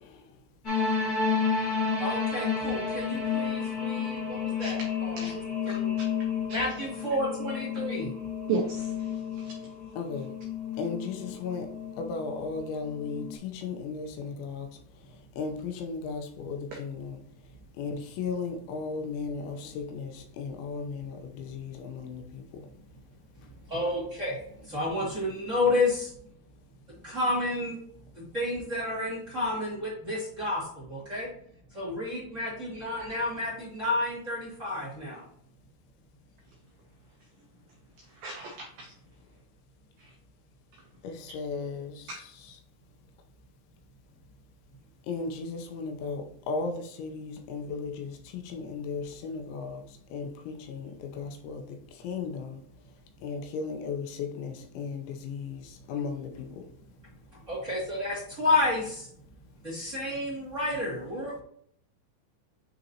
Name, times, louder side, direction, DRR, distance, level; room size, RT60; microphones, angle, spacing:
sound 1, 0.6-13.4, left 6 dB, 60° left, 0.9 m, -31 dB
voice 1, 2.0-5.2 5.7-5.9 6.5-8.1 23.7-26.1 27.0-27.8 28.1-31.3 31.7-35.2 57.5-59.1 59.6-61.4, left 2 dB, 30° right, 1.5 m, -30 dB
voice 2, 8.5-9.1 9.4-9.5 16.7-16.8 38.2-38.9 40.0-40.1 42.1-42.2, right 5 dB, 85° right, 2.0 m, -34 dB
voice 3, 10.0-10.3 10.8-11.7 12.0-14.7 15.4-17.1 17.8-22.4 41.0-41.9 45.1-48.1 48.5-49.8 50.1-51.6 52.0-52.6 53.2-55.6 55.9-56.5, left 4 dB, 85° left, 3.0 m, -35 dB
8.8 x 3.8 x 2.8 m
omnidirectional pair, 5.3 m